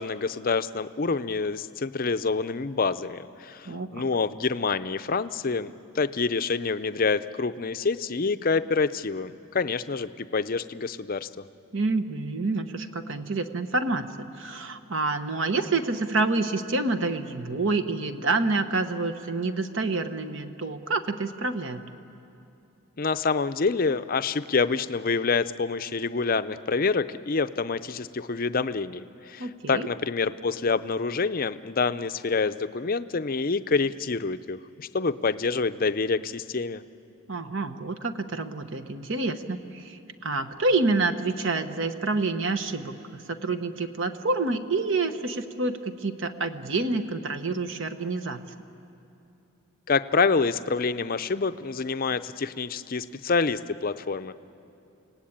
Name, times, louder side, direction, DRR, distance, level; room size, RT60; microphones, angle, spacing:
voice 1, 0.0-11.5 23.0-36.8 49.9-54.3, left 4 dB, 40° left, 12 dB, 0.5 m, -27 dB
voice 2, 3.7-4.0 11.7-21.8 29.4-29.9 37.3-48.4, right 3 dB, 55° right, 9 dB, 1.0 m, -28 dB
29.5 x 18.0 x 8.7 m, 2.8 s
head